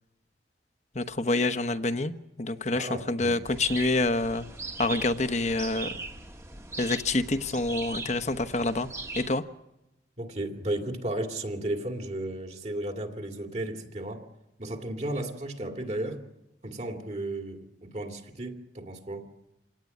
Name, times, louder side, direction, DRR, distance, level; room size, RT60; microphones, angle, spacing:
voice 1, 0.9-2.1 2.4-4.4 4.8-5.9 6.8-8.9 9.2-9.4, left 2 dB, 40° left, 10 dB, 1.1 m, -27 dB
voice 2, 2.7-3.3 10.2-14.3 14.6-16.2 16.6-19.3, right 1 dB, 40° right, 4 dB, 2.6 m, -34 dB
sound 1, 3.4-9.3, right 3 dB, 15° right, 1.5 m, -40 dB
27.5 x 18.0 x 9.5 m, 0.91 s
head